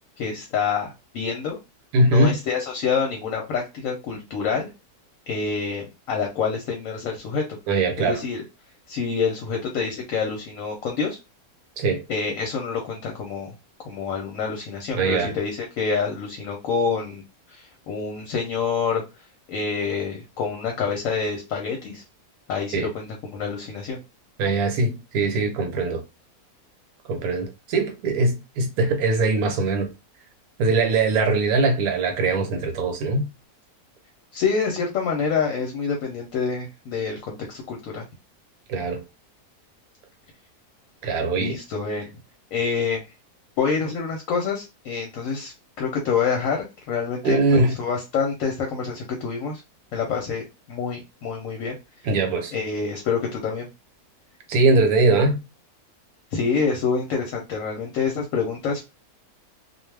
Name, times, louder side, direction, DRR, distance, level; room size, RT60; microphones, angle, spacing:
voice 1, 0.2-1.6 2.0-4.7 5.3-8.4 8.9-11.2 12.1-13.5 13.9-17.2 17.5-19.0 19.5-22.0 22.5-24.0 34.3-38.0 41.3-42.1 42.5-43.0 43.6-49.6 49.9-51.8 52.5-53.7 56.3-58.8, left 5 dB, 70° left, 0.9 m, -27 dB
voice 2, 1.9-2.4 7.7-8.2 11.8-12.0 14.9-15.3 22.7-22.9 24.4-26.0 27.1-29.9 30.6-33.3 38.7-39.0 41.0-41.6 47.2-47.7 52.0-52.5 54.5-55.4, right 3 dB, 75° right, 1.1 m, -21 dB
2.4 x 2.2 x 3.2 m
omnidirectional pair, 1.6 m